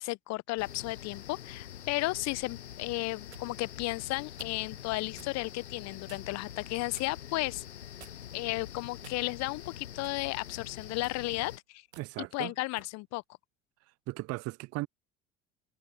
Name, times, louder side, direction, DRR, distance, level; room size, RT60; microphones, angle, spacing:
voice 1, 0.0-7.6 8.3-11.8 12.2-13.2, left 21 dB, 55° left, 1.0 m, -34 dB
sound 1, 0.6-11.6, left 10 dB, 85° left, 1.0 m, -45 dB
sound 2, 2.9-3.5 4.4-4.6 5.2-5.4 6.1-6.4 6.9-7.2 8.0-8.4 9.0-9.5 10.0-10.3 10.9-11.2 11.9-12.1 12.8-13.0, right 9 dB, 80° right, 2.3 m, -53 dB
voice 2, 12.0-12.5 14.1-14.9, right 20 dB, 50° right, 0.7 m, -36 dB
figure-of-eight pair, 60°, 32 cm